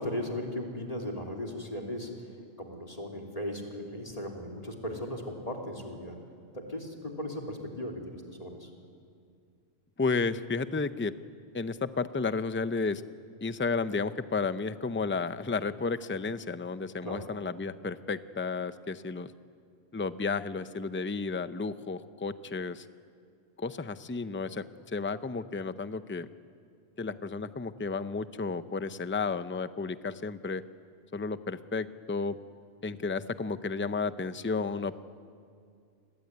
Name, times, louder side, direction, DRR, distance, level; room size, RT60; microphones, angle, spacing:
voice 1, 0.0-2.1 2.6-6.2 6.5-8.7 17.0-17.2, left 1 dB, 35° left, 0 dB, 3.4 m, -37 dB
voice 2, 10.0-11.1 11.5-13.0 13.4-19.3 19.9-22.8 23.6-26.3 27.0-30.6 31.1-32.4 32.8-35.0, left 4 dB, 15° left, 12 dB, 0.6 m, -32 dB
29.0 x 21.0 x 9.6 m, 2.3 s
omnidirectional pair, 1.2 m